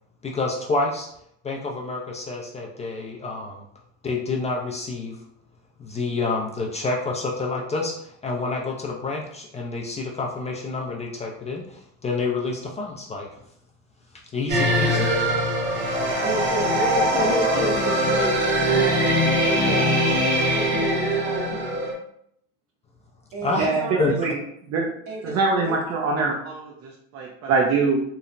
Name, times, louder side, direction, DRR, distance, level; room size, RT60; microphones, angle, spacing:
voice 1, 0.2-1.1 1.4-3.6 4.0-5.2 5.8-7.9 8.2-13.3 14.3-15.1 23.4-23.7 24.0-24.1, left 3 dB, 20° left, -1 dB, 0.4 m, -28 dB
sound 1, 14.5-21.9, equal, 35° right, 0.9 m, -22 dB
voice 2, 16.2-19.0 19.5-19.9 20.5-21.9 23.3-24.2 25.1-25.3 25.6-25.8, right 1 dB, 65° right, -1 dB, 1.0 m, -30 dB
voice 3, 23.6-24.4 24.7-24.9 25.2-28.0, right 4 dB, 50° right, 0 dB, 0.5 m, -24 dB
3.0 x 2.0 x 2.5 m, 0.70 s
supercardioid pair, 100°, 34 cm